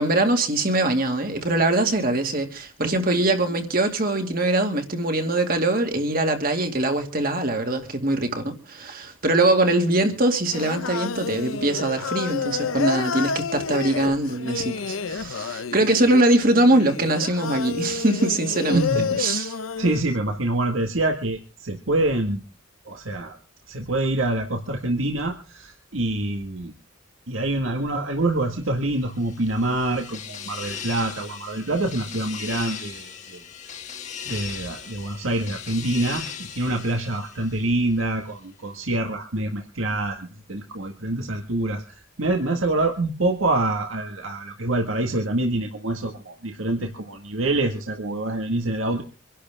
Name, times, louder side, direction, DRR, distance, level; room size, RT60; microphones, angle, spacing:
voice 1, 0.0-19.5, right 2 dB, 45° right, 2.3 m, -22 dB
Singing, 10.5-20.0, left 5 dB, 85° left, 0.7 m, -29 dB
voice 2, 18.7-19.2 19.8-22.4 22.9-23.4 23.7-26.7 27.3-33.4 34.3-49.0, right 2 dB, 75° right, 1.8 m, -26 dB
sound 1, 28.9-38.0, left 7 dB, 35° left, 1.4 m, -38 dB
25.5 x 11.5 x 3.6 m
head